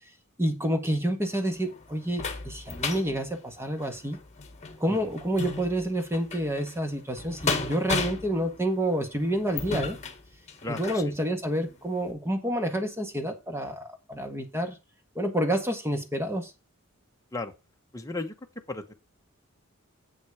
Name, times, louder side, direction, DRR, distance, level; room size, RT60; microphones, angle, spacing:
voice 1, 0.4-4.2 4.8-10.0 10.7-14.8 15.1-16.5, right 1 dB, 10° right, 1.7 m, -28 dB
sound 1, 1.2-11.1 11.6-11.7 12.1-12.2, left 4 dB, 35° left, 1.5 m, -35 dB
voice 2, 10.6-11.1 17.3-17.5 17.9-18.3 18.7-18.9, left 2 dB, 15° left, 1.1 m, -35 dB
8.4 x 6.1 x 4.9 m
head